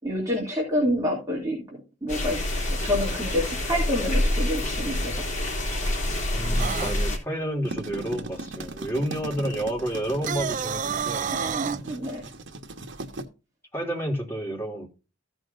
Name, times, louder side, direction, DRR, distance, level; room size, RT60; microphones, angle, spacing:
voice 1, 0.0-5.4 11.3-12.2, left 1 dB, 15° right, 2.7 m, -28 dB
sound 1, 2.1-7.2, left 1 dB, 40° left, 3.0 m, -27 dB
voice 2, 6.3-11.3 13.7-14.9, right 1 dB, 15° left, 2.9 m, -30 dB
sound 2, 6.6-6.9 10.1-11.8, right 7 dB, 40° right, 0.4 m, -29 dB
sound 3, 7.4-13.2, right 2 dB, 65° right, 1.3 m, -38 dB
14.5 x 6.2 x 2.6 m
head